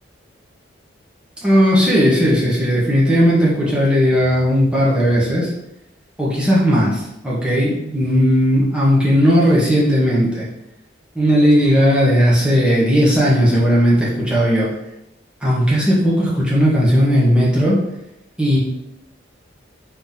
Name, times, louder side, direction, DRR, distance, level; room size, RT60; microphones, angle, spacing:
voice 1, 1.4-5.5 6.2-10.5 11.1-14.7 15.4-17.8 18.4-18.6, equal, 5° right, -7 dB, 1.0 m, -16 dB
4.1 x 2.9 x 3.7 m, 0.86 s
head